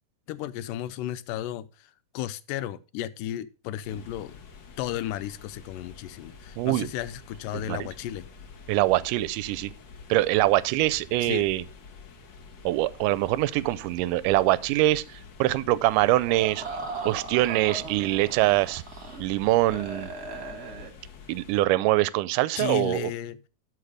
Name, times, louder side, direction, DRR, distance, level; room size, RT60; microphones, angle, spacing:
voice 1, 0.3-4.4 4.8-8.3 11.2-11.5 22.6-23.4, left 12 dB, 90° left, 2.2 m, -34 dB
sound 1, 3.8-21.6, left 5 dB, 55° left, 1.3 m, -48 dB
voice 2, 6.6-6.9 7.7-7.9 8.7-9.7 10.1-11.6 12.7-16.6 17.0-18.8 19.2-20.1 21.3-23.1, right 16 dB, 85° right, 2.1 m, -24 dB
sound 2, 16.3-19.2 19.5-20.9, right 3 dB, 35° right, 1.8 m, -38 dB
12.5 x 4.6 x 4.9 m
omnidirectional pair, 3.8 m